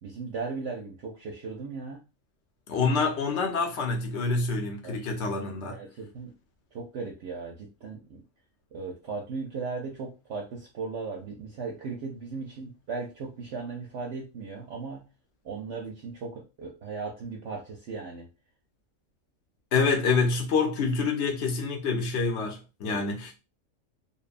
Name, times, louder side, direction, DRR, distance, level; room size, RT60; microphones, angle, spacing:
voice 1, 0.0-2.1 4.8-5.0 5.7-6.3 6.7-8.2 8.7-15.1 15.4-18.3 22.8-23.0, right 4 dB, 65° right, 0.8 m, -37 dB
voice 2, 2.7-5.8 19.7-23.4, left 4 dB, 60° left, 0.9 m, -27 dB
2.8 x 2.2 x 2.4 m
omnidirectional pair, 1.4 m